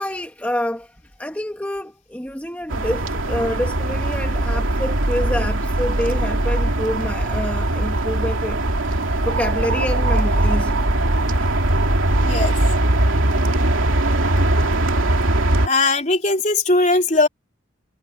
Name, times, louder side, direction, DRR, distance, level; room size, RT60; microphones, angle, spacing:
voice 1, 0.0-8.6 8.9-9.0 9.2-10.8 11.2-11.3, left 1 dB, 10° left, 1.6 m, -27 dB
sound 1, 2.7-15.7, right 1 dB, 90° right, 2.8 m, -20 dB
voice 2, 12.2-12.5 15.6-17.3, left 2 dB, 35° left, 3.9 m, -19 dB
head